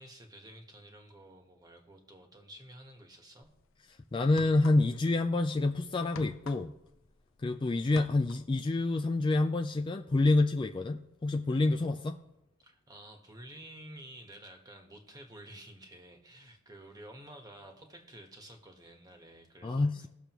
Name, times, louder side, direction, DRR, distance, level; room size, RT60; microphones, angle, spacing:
voice 1, 0.0-3.5 12.6-20.1, right 1 dB, 20° right, 3 dB, 1.3 m, -51 dB
sound 1, 3.4-3.6 4.2-5.1 5.4-7.5 7.8-8.6, left 4 dB, 70° left, 0.6 m, -47 dB
voice 2, 4.1-6.7 7.4-12.2 19.6-20.1, left 2 dB, 25° left, 6 dB, 0.3 m, -28 dB
19.0 x 6.7 x 3.0 m, 0.86 s
head